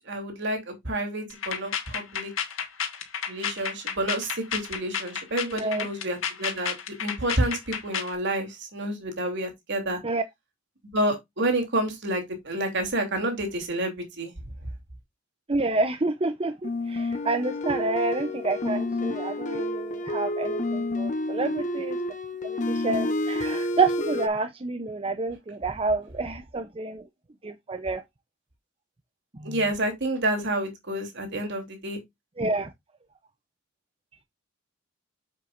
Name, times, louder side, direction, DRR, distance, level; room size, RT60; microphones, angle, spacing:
voice 1, 0.1-2.3 3.3-10.0 10.9-14.3 29.4-32.0, right 1 dB, 60° right, 3.3 m, -29 dB
sound 1, 1.3-8.1, left 7 dB, 70° left, 1.9 m, -31 dB
voice 2, 5.5-5.9 10.0-10.2 15.5-22.0 22.4-27.0 27.4-28.0 29.3-29.6 32.4-32.7, right 3 dB, 30° right, 0.7 m, -29 dB
sound 2, 16.6-24.3, left 1 dB, 40° left, 1.2 m, -29 dB
7.8 x 7.4 x 2.6 m
head